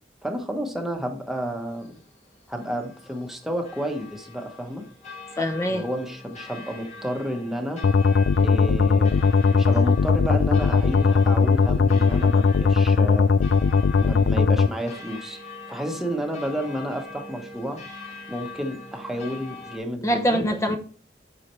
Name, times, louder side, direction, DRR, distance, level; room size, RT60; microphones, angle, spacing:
voice 1, 0.2-2.0 2.5-4.9 5.6-7.8 8.3-9.3 9.5-13.3 14.0-15.4 15.7-17.8 18.3-20.5, equal, ahead, 2 dB, 1.1 m, -31 dB
sound 1, 1.2-19.8, left 4 dB, 40° left, 2.0 m, -42 dB
voice 2, 5.4-5.8 20.0-20.8, equal, 15° left, 7 dB, 0.8 m, -23 dB
sound 2, 7.8-14.7, left 4 dB, 85° left, 0.4 m, -19 dB
8.3 x 5.7 x 3.2 m, 0.42 s
head